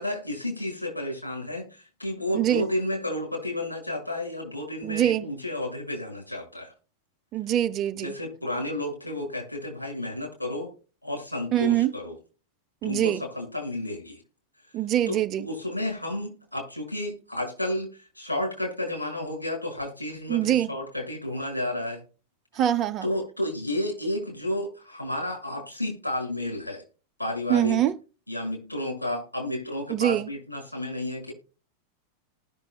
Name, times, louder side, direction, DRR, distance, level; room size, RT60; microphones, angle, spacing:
voice 1, 0.0-6.7 7.9-10.7 11.0-12.2 12.8-14.2 15.1-22.0 23.0-26.8 27.2-27.8 28.3-31.3, left 1 dB, 85° left, 6.0 m, -32 dB
voice 2, 2.3-2.7 4.8-5.3 7.3-8.1 11.5-11.9 12.8-13.2 14.7-15.5 20.3-20.7 22.6-23.1 27.5-28.0 29.9-30.3, right 12 dB, 35° right, 0.7 m, -24 dB
19.5 x 6.8 x 2.3 m
figure-of-eight pair, 90°, 0 cm